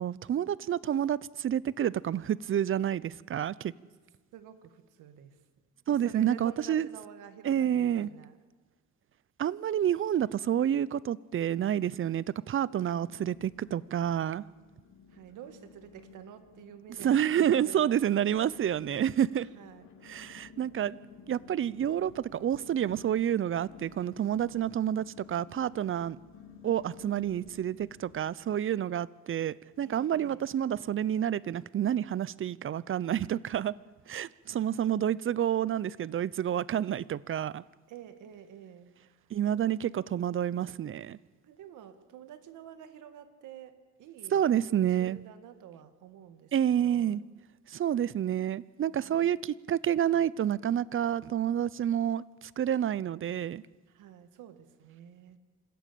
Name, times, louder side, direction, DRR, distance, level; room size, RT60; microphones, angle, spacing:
voice 1, 0.0-3.7 5.9-6.9 7.4-8.1 9.4-14.4 17.0-19.5 20.0-21.0 21.3-26.2 26.6-33.7 34.1-37.6 39.3-41.2 44.3-45.2 46.5-47.2 47.7-53.6, right 10 dB, 45° right, 0.6 m, -29 dB
voice 2, 4.3-5.4 5.9-8.4 15.1-18.0 19.4-19.9 29.8-30.4 34.5-35.1 37.9-39.3 39.5-40.1 41.4-47.1 49.0-49.3 53.9-55.4, right 9 dB, 90° right, 1.8 m, -49 dB
sound 1, 9.8-10.8 11.0-11.7 12.2-12.3 13.0-28.2, left 5 dB, 65° left, 4.2 m, -54 dB
26.0 x 14.5 x 8.5 m
cardioid pair, 90°, 30 cm